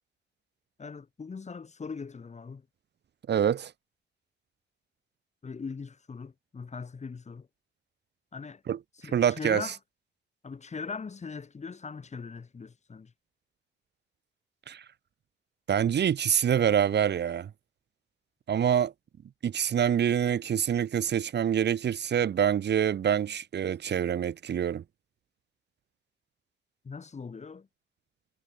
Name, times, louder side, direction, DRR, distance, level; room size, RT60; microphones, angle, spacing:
voice 1, 0.8-2.6 5.4-7.5 8.3-8.6 9.0-9.8 10.4-13.1 26.8-27.7, left 5 dB, 35° left, 7.5 m, -40 dB
voice 2, 3.3-3.7 8.7-9.7 14.7-14.8 15.7-17.5 18.5-18.9 19.4-24.8, right 9 dB, 60° right, 4.6 m, -26 dB
cardioid pair, 90°, 20 cm